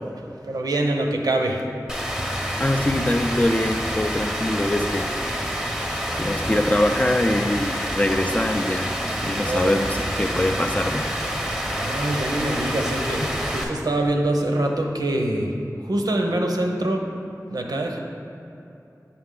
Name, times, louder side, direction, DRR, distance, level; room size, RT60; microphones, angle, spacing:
voice 1, 0.4-1.6 9.5-9.7 11.7-13.2 13.5-15.5 15.8-17.0 17.5-18.0, right 1 dB, 80° right, 2 dB, 0.7 m, -24 dB
Rain, 1.9-13.6, equal, 5° right, 0.7 m, -27 dB
voice 2, 2.6-5.1 6.2-8.9 9.2-11.1, left 1 dB, 20° left, 6 dB, 0.4 m, -23 dB
6.9 x 5.6 x 3.7 m, 2.8 s
wide cardioid pair, 65°, 6 cm